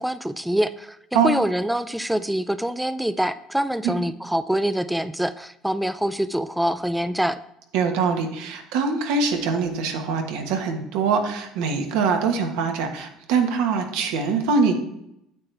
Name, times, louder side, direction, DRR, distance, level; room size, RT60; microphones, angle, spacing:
voice 1, 0.0-7.4, right 1 dB, 5° right, 12 dB, 0.3 m, -25 dB
voice 2, 7.7-14.7, right 5 dB, 85° right, 5 dB, 1.4 m, -23 dB
9.1 x 8.0 x 3.4 m, 0.80 s
cardioid pair, 135°, 0 cm